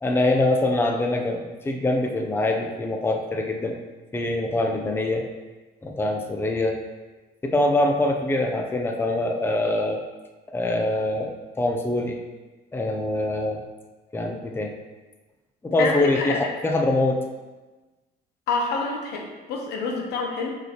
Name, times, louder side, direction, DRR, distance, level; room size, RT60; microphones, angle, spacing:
voice 1, 0.0-3.8 4.1-5.3 5.8-6.8 7.4-10.0 10.5-12.2 12.7-13.6 14.1-14.7 15.6-17.2, left 2 dB, 15° left, 2 dB, 0.6 m, -24 dB
voice 2, 15.8-16.4 18.5-20.6, left 4 dB, 85° left, 1 dB, 1.1 m, -27 dB
6.1 x 5.4 x 3.0 m, 1.2 s
cardioid pair, 110°, 17 cm